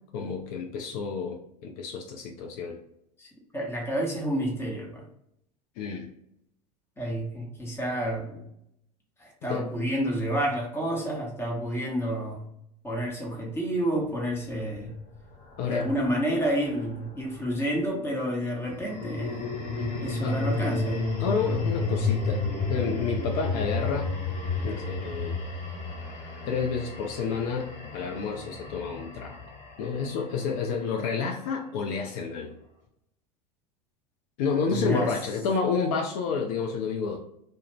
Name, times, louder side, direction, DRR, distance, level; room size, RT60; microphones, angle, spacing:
voice 1, 0.1-2.8 5.8-6.1 9.5-9.6 15.6-15.9 19.8-19.9 20.2-20.4 21.2-24.1 24.6-25.4 26.4-29.4 29.8-32.5 34.4-37.2, left 5 dB, 60° left, 2 dB, 0.5 m, -30 dB
voice 2, 3.5-5.0 7.0-8.4 9.2-12.4 12.8-15.0 15.7-19.6 20.0-21.0 34.7-35.1, right 1 dB, 10° left, -1 dB, 0.9 m, -29 dB
sound 1, 14.5-17.0 18.6-30.9, left 3 dB, 35° left, 1.1 m, -32 dB
2.4 x 2.1 x 3.1 m, 0.77 s
hypercardioid pair, 85°, 21 cm